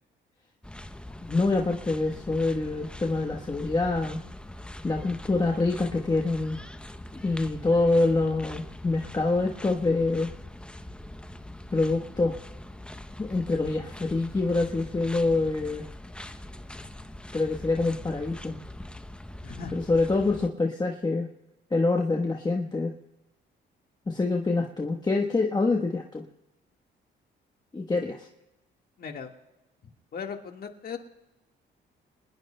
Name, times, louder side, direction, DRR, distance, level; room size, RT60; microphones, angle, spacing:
sound 1, 0.6-20.5, left 1 dB, 5° left, 0.7 m, -42 dB
voice 1, 1.2-4.2 4.8-6.6 7.1-10.3 11.7-12.3 13.2-15.9 17.3-18.6 19.7-21.3 21.7-22.9 24.1-26.2 27.7-28.3, left 3 dB, 20° left, 2 dB, 1.2 m, -26 dB
voice 2, 19.4-19.7 29.0-29.3 30.1-31.0, left 6 dB, 50° left, 4 dB, 1.7 m, -37 dB
28.0 x 20.0 x 2.2 m, 1.0 s
cardioid pair, 90°, 20 cm